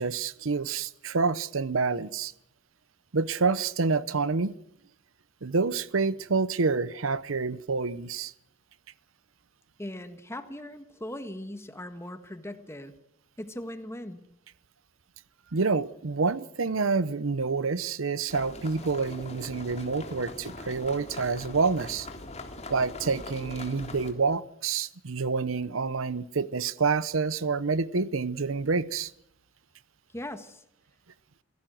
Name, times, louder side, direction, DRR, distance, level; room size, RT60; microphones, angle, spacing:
voice 1, 0.0-2.3 3.1-4.5 5.4-8.3 15.5-22.1 22.7-29.1, right 4 dB, 80° right, 0.8 m, -28 dB
voice 2, 9.8-12.9 13.4-14.2 30.1-30.6, left 1 dB, 15° left, 1.6 m, -39 dB
sound 1, 18.3-24.1, left 2 dB, 35° left, 3.2 m, -42 dB
28.5 x 16.5 x 7.8 m
head